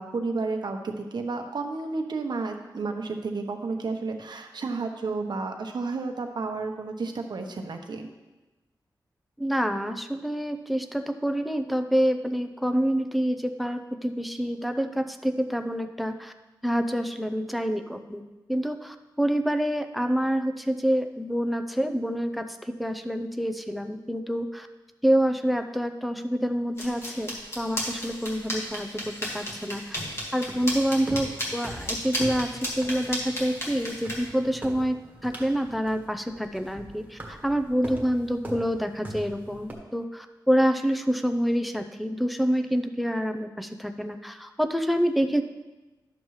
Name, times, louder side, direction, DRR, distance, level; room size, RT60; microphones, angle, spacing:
voice 1, 0.0-8.1, right 3 dB, 70° right, 4 dB, 1.0 m, -31 dB
voice 2, 9.4-16.3 16.6-18.2 18.5-24.7 25.0-30.0 30.3-45.4, equal, ahead, 7 dB, 0.5 m, -27 dB
sound 1, 26.8-34.3, equal, 35° left, 1.9 m, -34 dB
sound 2, 30.5-39.7, right 1 dB, 20° right, 1.5 m, -42 dB
11.5 x 7.0 x 3.2 m, 1.1 s
wide cardioid pair, 115°, 8 cm